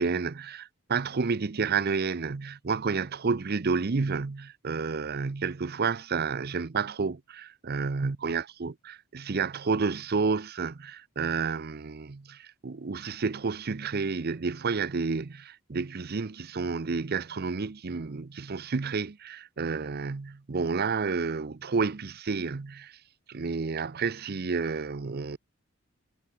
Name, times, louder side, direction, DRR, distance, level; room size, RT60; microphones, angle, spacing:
voice 1, 0.0-22.9 23.3-25.4, right 4 dB, 45° right, 0.6 m, -30 dB
head